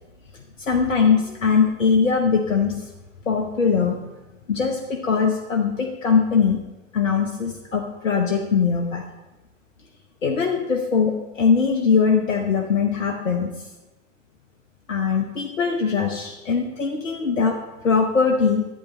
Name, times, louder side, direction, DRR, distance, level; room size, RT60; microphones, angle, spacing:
voice 1, 0.6-2.8 3.3-4.0 4.5-6.6 6.9-9.0 10.2-13.5 14.9-17.6 17.8-18.7, left 5 dB, 80° left, 2 dB, 1.0 m, -21 dB
11.5 x 8.3 x 3.2 m, 1.1 s
figure-of-eight pair, 90°, 38 cm